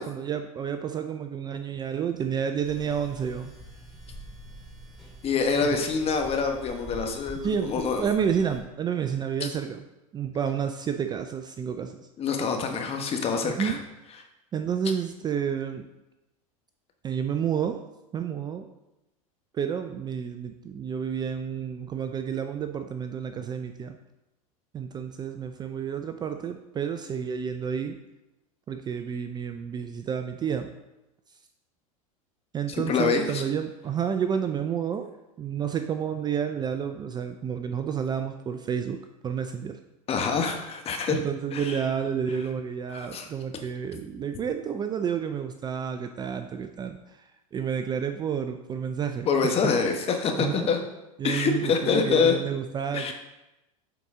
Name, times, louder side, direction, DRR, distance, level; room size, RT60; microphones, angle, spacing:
voice 1, 0.0-3.5 7.4-9.8 10.1-12.1 13.4-13.8 14.5-15.9 17.0-17.8 18.1-18.7 19.5-24.0 24.7-28.0 28.7-30.7 32.5-35.1 35.4-39.0 39.2-39.8 41.1-49.5 50.4-50.7 51.2-53.1, right 7 dB, 25° right, 7 dB, 0.4 m, -30 dB
sound 1, 2.6-8.6, right 1 dB, ahead, 2.3 m, -45 dB
voice 2, 5.2-8.0 12.2-13.7 32.9-33.4 40.1-41.2 41.5-41.8 42.9-43.3 49.3-50.8 51.2-52.4 52.9-53.1, left 5 dB, 35° left, 4 dB, 1.1 m, -25 dB
8.2 x 4.1 x 3.7 m, 0.96 s
hypercardioid pair, 105°, 18 cm